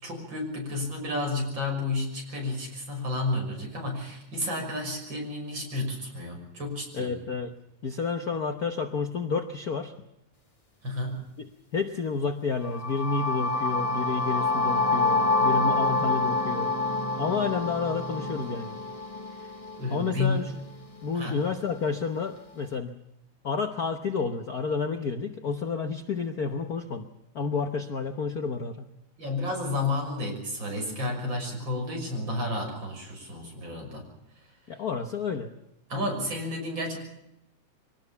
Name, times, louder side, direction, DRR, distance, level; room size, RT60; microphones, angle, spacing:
voice 1, 0.0-7.1 10.8-11.2 19.8-20.4 21.1-21.4 29.2-34.0 35.9-37.0, left 2 dB, 40° right, 1 dB, 6.7 m, -31 dB
voice 2, 6.9-7.5 7.8-9.9 11.4-11.5 11.7-16.7 17.2-18.8 19.9-20.5 21.0-22.9 23.4-27.1 27.3-28.9 34.7-35.5, left 5 dB, 70° left, 7 dB, 0.8 m, -30 dB
sound 1, 12.6-20.5, left 3 dB, 30° left, 0.6 m, -27 dB
sound 2, 13.3-19.0, right 5 dB, 60° right, 7.3 m, -42 dB
24.0 x 18.5 x 7.1 m, 0.84 s
omnidirectional pair, 3.3 m